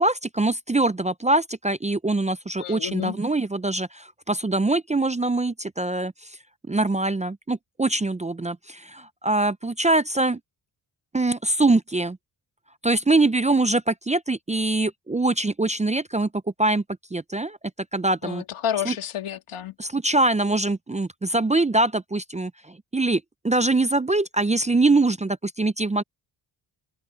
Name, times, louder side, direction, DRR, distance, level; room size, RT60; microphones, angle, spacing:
voice 1, 0.0-6.3 6.7-10.4 11.1-12.2 12.8-16.3 16.6-16.8 17.1-17.6 17.9-18.4 18.9-19.0 19.8-26.0, right 2 dB, 15° right, 0.5 m, -23 dB
voice 2, 2.6-3.2 18.2-19.7, left 10 dB, 80° left, 2.4 m, -30 dB
cardioid pair, 100°, 49 cm